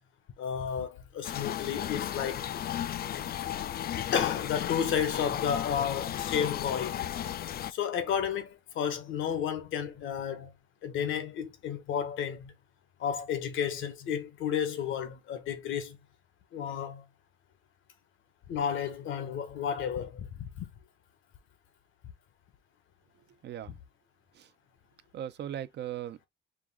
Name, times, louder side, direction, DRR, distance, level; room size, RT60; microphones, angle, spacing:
voice 1, 0.4-2.5 4.1-7.0 7.7-10.5 10.8-12.5 13.0-16.0 16.5-17.1 18.5-20.7 23.7-23.8, left 8 dB, 80° left, 1.1 m, -32 dB
sound 1, 1.2-7.7, left 11 dB, 50° left, 0.4 m, -34 dB
voice 2, 25.1-26.3, right 11 dB, 60° right, 0.5 m, -38 dB
4.9 x 2.4 x 3.5 m
cardioid pair, 90°, 20 cm